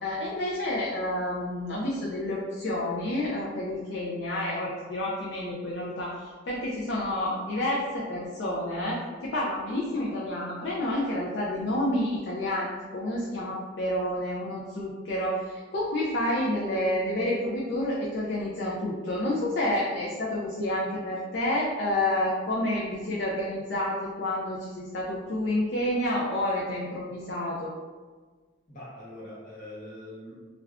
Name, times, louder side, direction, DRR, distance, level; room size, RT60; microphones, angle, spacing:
voice 1, 0.0-27.7, left 1 dB, 55° left, -5 dB, 0.4 m, -29 dB
voice 2, 28.7-30.3, left 1 dB, 40° left, -6 dB, 0.8 m, -43 dB
2.4 x 2.3 x 3.3 m, 1.4 s
head